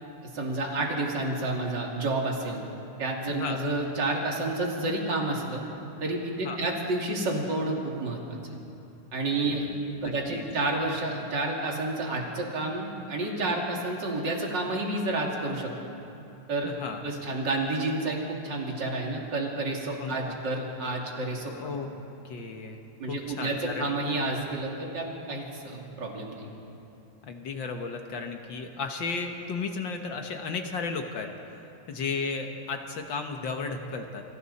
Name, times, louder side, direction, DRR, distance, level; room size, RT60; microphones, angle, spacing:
voice 1, 0.3-2.6 3.0-5.6 6.0-8.5 9.1-9.8 10.0-15.9 16.5-16.7 17.0-18.2 18.4-21.8 23.0-26.5, right 2 dB, 35° right, -1 dB, 3.0 m, -30 dB
voice 2, 3.3-3.6 6.4-6.6 9.5-9.6 10.0-10.4 16.6-17.0 20.0-20.4 21.6-21.9 22.2-22.8 23.1-23.9 27.2-31.3 31.9-34.2, left 4 dB, 70° left, 4 dB, 1.1 m, -34 dB
29.0 x 25.0 x 4.2 m, 2.8 s
omnidirectional pair, 3.8 m